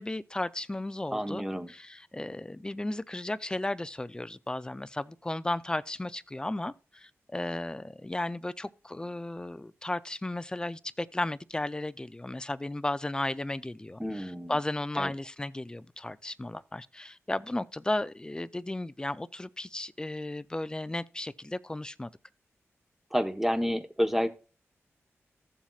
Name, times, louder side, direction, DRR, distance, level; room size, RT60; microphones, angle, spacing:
voice 1, 0.0-22.1, left 1 dB, 15° left, 0.5 m, -34 dB
voice 2, 1.1-1.7 14.0-14.6 15.0-15.1 23.1-24.3, equal, 5° right, 1.1 m, -29 dB
15.0 x 7.2 x 2.4 m
cardioid pair, 65°, 5 cm